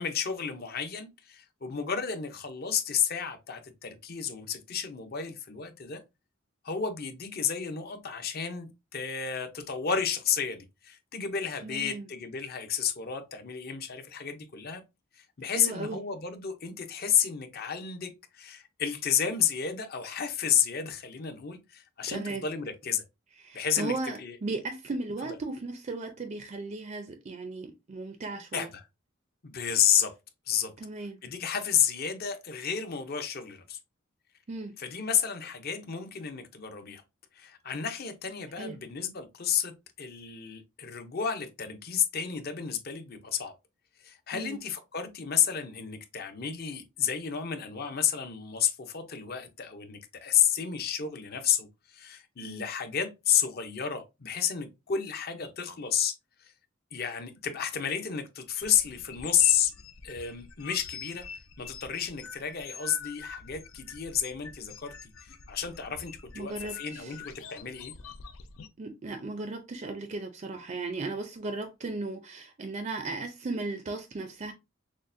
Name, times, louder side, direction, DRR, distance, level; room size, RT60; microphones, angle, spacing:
voice 1, 0.0-6.0 6.6-14.8 15.1-23.0 23.5-24.4 28.5-28.8 29.4-30.1 30.5-30.7 31.2-33.8 34.8-37.0 37.3-43.5 44.0-56.1 56.4-56.5 56.9-59.7 60.0-61.2 61.6-67.9, left 8 dB, 50° left, 0.6 m, -31 dB
voice 2, 11.6-12.0 15.4-16.0 22.1-22.4 23.4-28.7 30.8-31.2 34.5-34.7 38.6-38.8 44.3-44.6 52.4-52.7 66.4-67.2 68.8-74.5, right 3 dB, 35° right, 0.4 m, -36 dB
sound 1, 58.6-68.7, left 6 dB, 90° left, 0.5 m, -46 dB
6.2 x 2.1 x 2.6 m
head